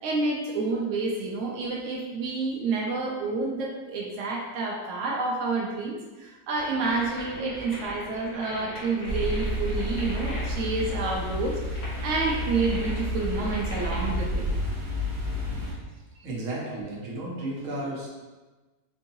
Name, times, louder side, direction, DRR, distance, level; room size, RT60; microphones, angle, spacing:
voice 1, 0.0-14.5, right 3 dB, 75° right, -2 dB, 0.7 m, -29 dB
sound 1, 6.5-14.2, left 1 dB, 60° left, 1.4 m, -41 dB
sound 2, 9.1-15.7, equal, 35° right, 0.9 m, -30 dB
voice 2, 16.2-18.1, right 1 dB, 55° right, -3 dB, 1.0 m, -33 dB
4.4 x 2.7 x 2.7 m, 1.2 s
omnidirectional pair, 1.9 m